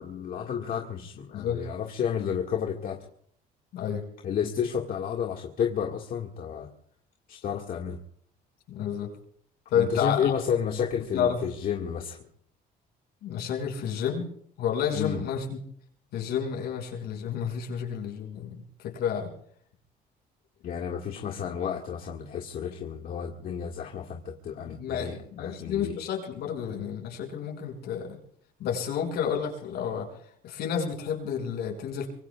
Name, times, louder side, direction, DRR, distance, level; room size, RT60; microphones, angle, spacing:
voice 1, 0.0-3.1 4.2-6.7 7.3-8.0 9.7-12.3 14.9-15.2 20.6-26.0, left 8 dB, 55° left, 1 dB, 1.9 m, -31 dB
voice 2, 1.3-1.7 3.7-4.1 8.7-9.1 9.7-10.3 11.1-11.4 13.2-14.3 14.6-15.6 16.1-19.3 24.6-28.2 28.6-30.1 30.4-32.1, left 8 dB, 75° left, 1 dB, 6.2 m, -30 dB
25.0 x 23.5 x 2.4 m, 0.63 s
cardioid pair, 110°, 17 cm